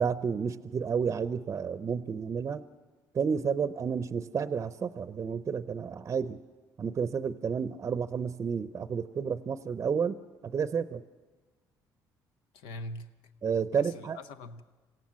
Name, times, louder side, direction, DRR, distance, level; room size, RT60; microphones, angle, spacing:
voice 1, 0.0-2.6 3.1-6.4 6.8-10.2 10.5-11.0 13.4-14.2, right 6 dB, 35° right, 0.6 m, -31 dB
voice 2, 12.5-13.1 13.7-14.6, left 2 dB, 90° left, 1.1 m, -42 dB
26.5 x 16.5 x 7.5 m
cardioid pair, 100°, 8 cm